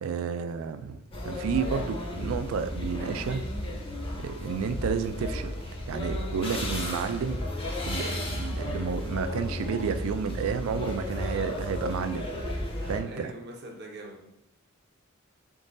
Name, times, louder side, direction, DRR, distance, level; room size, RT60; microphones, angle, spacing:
voice 1, 0.0-1.0 1.2-3.4 4.2-5.5 5.9-7.4 7.8-12.3 12.8-13.3, right 6 dB, 70° right, 10 dB, 0.3 m, -31 dB
sound 1, 1.1-13.0, left 1 dB, 25° left, 0.6 m, -33 dB
voice 2, 13.1-14.3, right 1 dB, 50° right, 1 dB, 0.7 m, -43 dB
3.8 x 3.7 x 2.6 m, 0.82 s
head